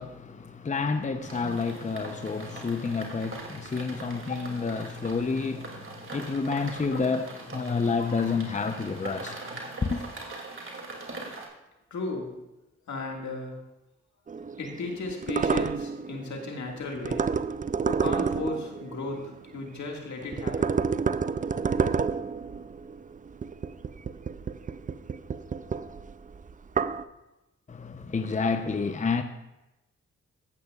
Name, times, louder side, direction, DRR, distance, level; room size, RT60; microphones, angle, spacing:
voice 1, 0.0-9.4 9.8-10.1 27.7-29.2, left 4 dB, 25° left, 0.7 m, -29 dB
sound 1, 1.2-11.5, right 2 dB, 45° right, 2.6 m, -41 dB
voice 2, 6.3-6.8 7.7-7.8 11.9-12.4 12.9-13.6 14.6-17.5 17.8-20.8, left 3 dB, 75° left, 2.0 m, -36 dB
sound 2, 14.3-19.8 20.2-27.0, right 5 dB, 30° right, 0.4 m, -30 dB
14.5 x 8.5 x 2.4 m
supercardioid pair, 45°, 29 cm